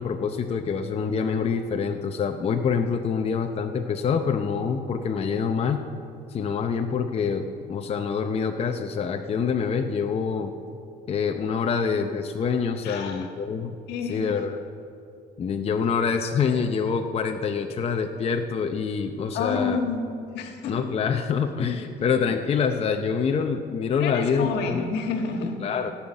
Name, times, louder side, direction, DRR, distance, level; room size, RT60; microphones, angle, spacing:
voice 1, 0.0-5.8 6.3-10.5 11.1-13.8 14.1-14.6 15.4-19.8 20.7-24.9 25.6-25.9, left 6 dB, 35° left, 5 dB, 0.7 m, -26 dB
voice 2, 12.8-13.3 13.9-14.3 19.3-20.8 21.9-22.0 24.0-25.6, left 4 dB, 80° left, 4 dB, 1.6 m, -29 dB
17.0 x 5.8 x 7.0 m, 2.5 s
cardioid pair, 110°, 17 cm